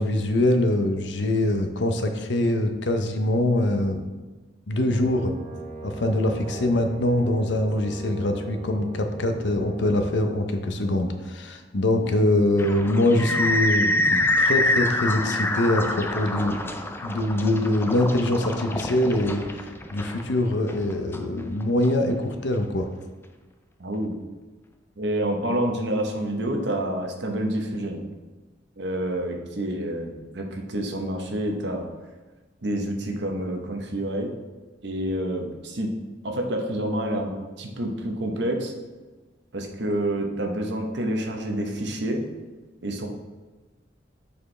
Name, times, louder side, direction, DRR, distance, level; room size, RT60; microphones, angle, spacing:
voice 1, 0.0-4.1 4.7-5.3 5.8-16.6 17.0-22.9, left 1 dB, 70° left, 6 dB, 0.6 m, -23 dB
Brass instrument, 4.9-10.4, right 3 dB, 10° right, 1.2 m, -39 dB
sound 1, 12.6-21.9, left 1 dB, 10° left, 0.3 m, -26 dB
voice 2, 23.8-24.2 25.0-28.0 28.8-31.9 32.6-34.3 34.8-35.9 36.2-38.7 39.5-42.3 42.8-43.1, right 1 dB, 65° right, 2 dB, 0.9 m, -28 dB
6.9 x 4.5 x 3.2 m, 1.3 s
head